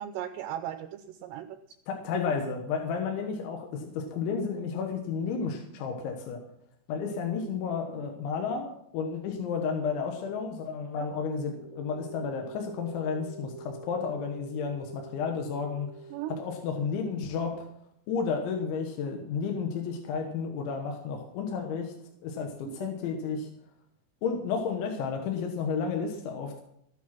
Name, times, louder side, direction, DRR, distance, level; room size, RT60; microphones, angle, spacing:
voice 1, 0.0-1.6 11.0-11.1 16.1-16.4 22.6-22.9, right 11 dB, 85° right, 8 dB, 2.4 m, -37 dB
voice 2, 1.9-6.4 6.9-15.9 16.3-17.7 18.1-21.9 22.2-23.5 24.2-26.6, left 5 dB, 75° left, 3 dB, 3.6 m, -32 dB
sound 1, 11.3-16.2, right 3 dB, 60° left, 0.3 m, -46 dB
14.5 x 9.4 x 6.0 m, 0.73 s
omnidirectional pair, 5.7 m